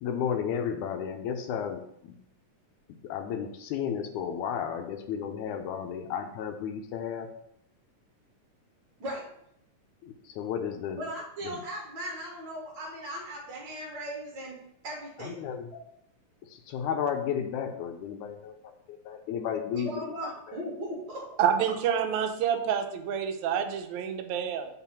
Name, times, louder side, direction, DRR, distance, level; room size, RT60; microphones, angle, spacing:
voice 1, 0.0-2.1 3.0-7.3 10.0-11.0 11.4-11.6 15.2-15.7 16.4-18.6 18.9-20.6, left 8 dB, 80° left, 6 dB, 2.1 m, -33 dB
voice 2, 10.9-15.3 19.7-21.3, right 1 dB, 50° right, -2 dB, 1.4 m, -38 dB
voice 3, 21.4-24.7, right 8 dB, 80° right, 5 dB, 1.9 m, -28 dB
5.8 x 3.7 x 5.8 m, 0.75 s
omnidirectional pair, 3.5 m